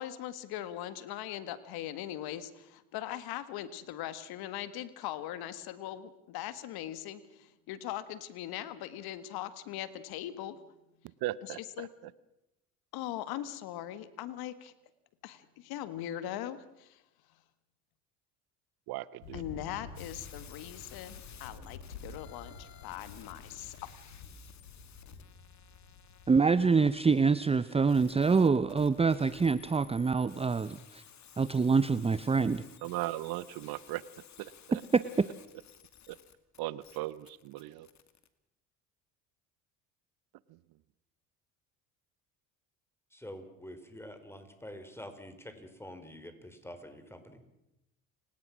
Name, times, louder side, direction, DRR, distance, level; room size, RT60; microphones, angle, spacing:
voice 1, 0.0-10.6 11.4-11.9 12.9-14.7 15.2-17.0 19.3-23.9, left 12 dB, 70° left, 14 dB, 1.8 m, -40 dB
voice 2, 11.2-11.9 18.9-19.4 32.8-34.0 34.4-34.8 36.1-36.2 36.6-37.9, right 17 dB, 70° right, 19 dB, 0.9 m, -37 dB
Thunder, 19.2-27.4, left 4 dB, 90° left, 4.3 m, -50 dB
sound 1, 20.0-38.3, left 8 dB, 45° left, 2.5 m, -56 dB
voice 3, 26.3-31.0 31.4-32.6 34.9-35.3, right 4 dB, 15° right, 16 dB, 0.7 m, -26 dB
voice 4, 43.1-47.4, equal, 5° left, 8 dB, 4.5 m, -47 dB
30.0 x 18.0 x 6.2 m, 0.89 s
hypercardioid pair, 70°, 39 cm